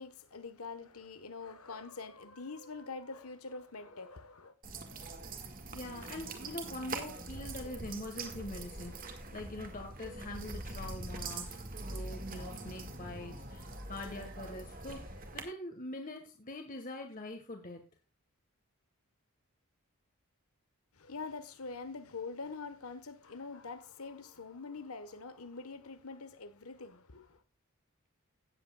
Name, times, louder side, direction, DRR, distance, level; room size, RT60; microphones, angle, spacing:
voice 1, 0.0-4.5 20.9-27.4, left 4 dB, 80° left, 1.3 m, -45 dB
sound 1, 4.6-15.4, right 2 dB, 40° right, 1.7 m, -43 dB
voice 2, 5.7-11.6 11.8-17.8, left 1 dB, 35° left, 1.5 m, -44 dB
16.5 x 8.2 x 2.3 m
head